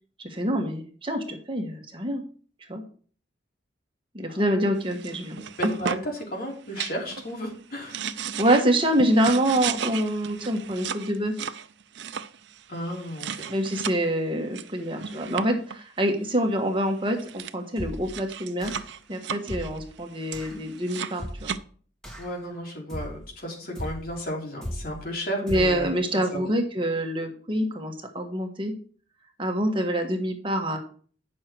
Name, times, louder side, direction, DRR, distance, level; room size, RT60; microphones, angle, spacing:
voice 1, 0.2-2.2 2.7-2.8 4.1-5.7 8.4-11.3 13.5-18.7 19.1-21.5 25.4-28.7 29.4-30.8, right 1 dB, 30° right, 3 dB, 1.5 m, -26 dB
sound 1, 4.8-6.2 6.7-7.3 7.7-14.0 14.5-15.8 16.8-16.9 17.1-17.5 17.9-21.6, right 7 dB, 70° right, 0.6 m, -35 dB
voice 2, 5.6-8.0 12.7-13.5 22.2-26.5, equal, 55° left, -1 dB, 3.5 m, -34 dB
sound 2, 17.8-18.2 18.6-19.0 19.5-19.9 20.3-20.6 21.2-21.6 22.0-22.4 22.9-23.3 23.8-24.2 24.6-25.0 25.5-25.9, equal, 5° left, 2.8 m, -36 dB
9.7 x 6.5 x 4.6 m, 0.44 s
head